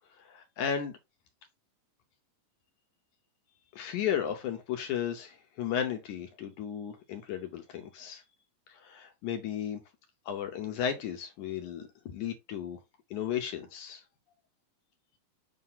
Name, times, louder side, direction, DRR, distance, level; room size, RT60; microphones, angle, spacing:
voice 1, 0.2-0.9 3.7-8.2 8.7-9.8 10.3-12.8 13.1-14.0, left 9 dB, 70° left, 2.0 m, -34 dB
7.8 x 2.6 x 5.7 m
omnidirectional pair, 4.2 m